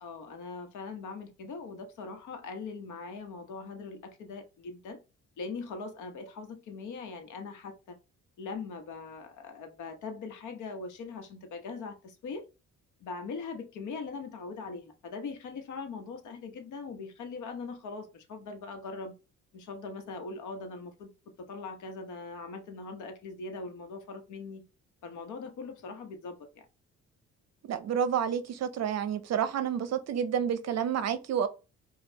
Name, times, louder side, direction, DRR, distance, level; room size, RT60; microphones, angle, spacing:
voice 1, 0.0-5.0 5.4-8.0 8.4-12.4 13.0-19.1 19.5-21.1 21.4-24.7 25.0-26.5, left 4 dB, 75° left, 1.0 m, -41 dB
voice 2, 27.6-31.5, right 8 dB, 60° right, 0.6 m, -29 dB
5.3 x 2.3 x 2.9 m
cardioid pair, 90°, 30 cm